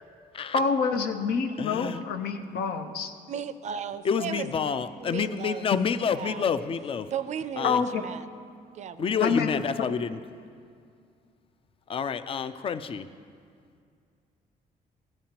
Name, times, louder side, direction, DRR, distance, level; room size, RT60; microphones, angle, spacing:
voice 1, 0.5-3.1 7.6-8.0 9.2-9.5, left 5 dB, 90° left, 6 dB, 0.7 m, -27 dB
voice 2, 1.6-2.0 4.0-7.1 7.6-7.8 9.0-10.2 11.9-13.1, left 6 dB, 35° left, 12 dB, 0.4 m, -28 dB
voice 3, 3.3-5.7 6.0-6.5 7.1-8.3 8.7-9.3, right 8 dB, 45° right, 12 dB, 0.4 m, -36 dB
15.0 x 8.9 x 2.9 m, 2.3 s
cardioid pair, 125°, 16 cm